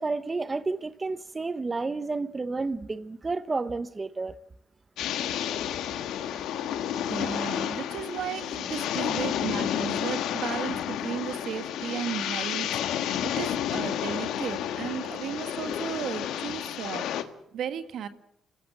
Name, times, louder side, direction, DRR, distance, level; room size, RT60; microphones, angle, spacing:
voice 1, 0.0-4.4, right 3 dB, 25° right, 0.8 m, -31 dB
sound 1, 5.0-17.2, left 10 dB, 85° left, 1.4 m, -31 dB
voice 2, 7.1-18.1, right 8 dB, 75° right, 1.6 m, -35 dB
29.0 x 15.0 x 7.5 m
cardioid pair, 90°, 0 cm